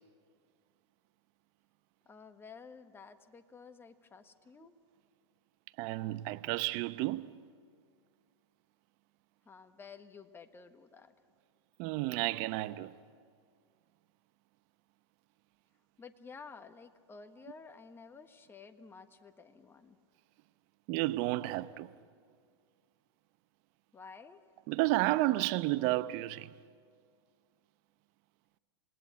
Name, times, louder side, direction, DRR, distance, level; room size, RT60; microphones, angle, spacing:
voice 1, 2.0-4.7 9.4-11.1 16.0-20.0 23.9-24.4, left 5 dB, 15° left, 1.4 m, -52 dB
voice 2, 5.8-7.3 11.8-12.9 20.9-21.9 24.7-26.5, right 18 dB, 45° right, 0.9 m, -31 dB
28.0 x 19.5 x 8.3 m
hypercardioid pair, 115°, 15 cm